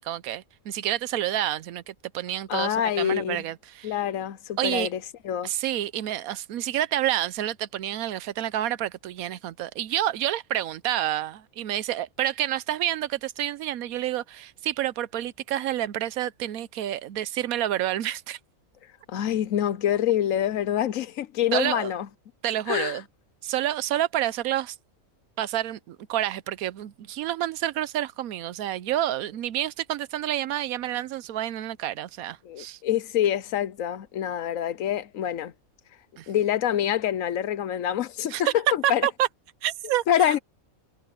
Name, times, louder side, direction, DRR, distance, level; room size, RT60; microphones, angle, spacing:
voice 1, 0.0-4.0 4.6-4.9 5.4-18.4 21.5-21.9 22.4-23.0 23.4-24.8 25.4-32.8 36.2-36.3 38.3-38.5 38.8-39.3 39.6-40.3, right 12 dB, 90° right, 1.1 m, -29 dB
voice 2, 2.5-3.4 3.8-5.0 5.2-5.5 19.1-22.1 22.7-23.0 32.4-35.5 36.3-39.1 40.1-40.4, left 10 dB, 70° left, 1.1 m, -26 dB
omnidirectional pair, 1.5 m